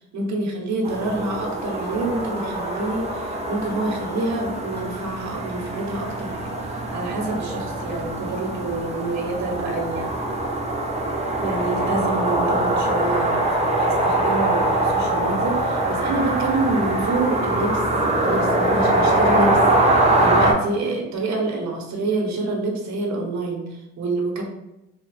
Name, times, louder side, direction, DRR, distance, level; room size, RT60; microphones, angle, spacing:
voice 1, 0.1-6.6 6.9-10.1 11.4-17.8 18.1-19.6 19.9-24.4, right 2 dB, 65° right, 1 dB, 0.8 m, -27 dB
sound 1, 0.8-20.5, right 1 dB, 20° right, 0.5 m, -23 dB
2.7 x 2.1 x 3.1 m, 0.96 s
cardioid pair, 90°, 30 cm